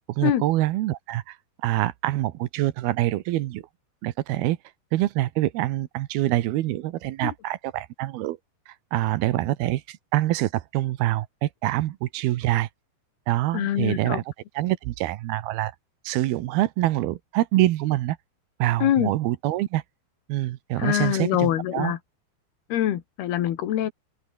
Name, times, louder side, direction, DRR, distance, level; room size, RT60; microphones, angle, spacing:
voice 1, 0.0-1.4 1.6-3.6 4.0-4.6 4.9-8.4 8.7-12.7 13.3-14.2 14.6-15.7 16.0-18.2 18.6-19.8 20.3-21.9, right 16 dB, 85° right, 2.9 m, -25 dB
voice 2, 13.5-14.2 18.8-19.1 20.8-22.0 22.7-23.9, left 11 dB, 80° left, 3.7 m, -24 dB
open air
omnidirectional pair, 4.5 m